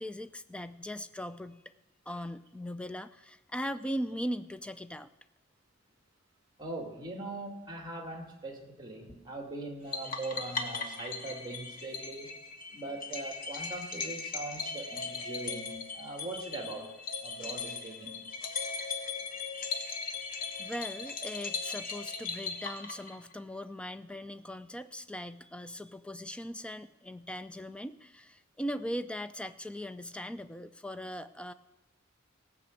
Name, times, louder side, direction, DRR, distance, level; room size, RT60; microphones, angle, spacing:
voice 1, 0.0-1.6 2.1-5.1 20.6-31.5, equal, 5° left, 12 dB, 0.4 m, -39 dB
voice 2, 6.6-12.3 12.7-16.9 17.2-18.2, right 2 dB, 20° right, 3 dB, 2.0 m, -41 dB
sound 1, 9.9-23.4, left 4 dB, 45° left, 1.3 m, -38 dB
17.0 x 6.0 x 8.0 m, 1.0 s
head